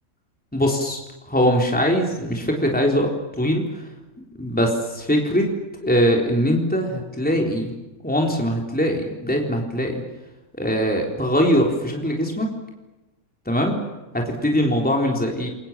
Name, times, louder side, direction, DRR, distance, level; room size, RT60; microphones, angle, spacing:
voice 1, 0.5-1.0 1.3-3.1 3.4-3.8 4.2-5.5 5.8-7.7 8.0-10.0 10.6-12.5 13.5-13.8 14.1-15.5, equal, 5° left, 0 dB, 3.9 m, -21 dB
29.0 x 24.0 x 7.6 m, 1.1 s
omnidirectional pair, 1.5 m